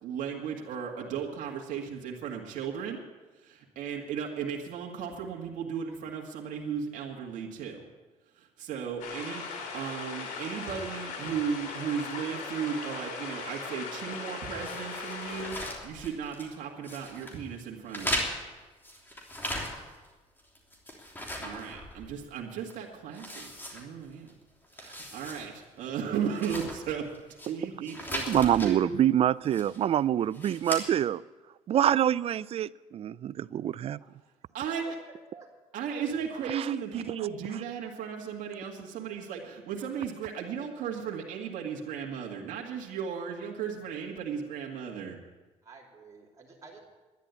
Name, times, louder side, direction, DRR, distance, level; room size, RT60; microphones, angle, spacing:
voice 1, 0.0-3.0 3.4-7.8 8.4-15.6 15.8-18.3 21.4-24.3 24.8-27.1 27.5-28.8 34.5-35.0 35.7-45.2, right 7 dB, 70° right, 2.0 m, -35 dB
sound 1, 9.0-15.7, left 4 dB, 85° left, 3.0 m, -39 dB
sound 2, 14.6-16.6 16.8-17.4 17.9-20.1 20.4-22.3 22.7-22.8 23.1-24.3 24.6-25.5 25.8-25.9 26.3-27.5 27.8-28.7 29.4-29.9 30.3-30.8, left 1 dB, 15° left, 3.2 m, -38 dB
voice 2, 28.3-31.2 31.7-34.0 36.5-36.7, right 10 dB, 45° right, 0.4 m, -26 dB
voice 3, 45.6-46.8, right 5 dB, 25° right, 3.1 m, -51 dB
11.5 x 10.5 x 8.2 m
cardioid pair, 95°, 14 cm